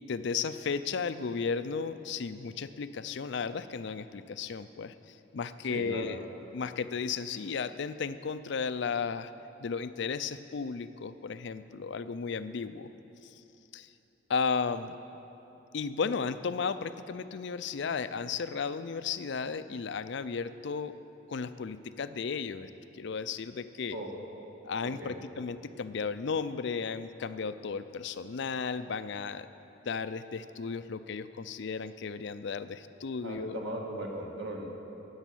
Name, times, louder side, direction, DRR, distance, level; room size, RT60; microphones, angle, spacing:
voice 1, 0.1-6.3 6.5-9.3 9.6-12.9 13.2-13.3 13.7-13.9 14.3-15.0 15.7-21.0 21.3-24.0 24.6-29.5 29.9-33.6, left 5 dB, 55° left, 13 dB, 0.4 m, -34 dB
voice 2, 5.7-6.1 23.9-24.1 24.8-25.2 33.2-34.7, right 1 dB, 60° right, 0 dB, 1.8 m, -38 dB
10.5 x 8.1 x 9.1 m, 3.0 s
head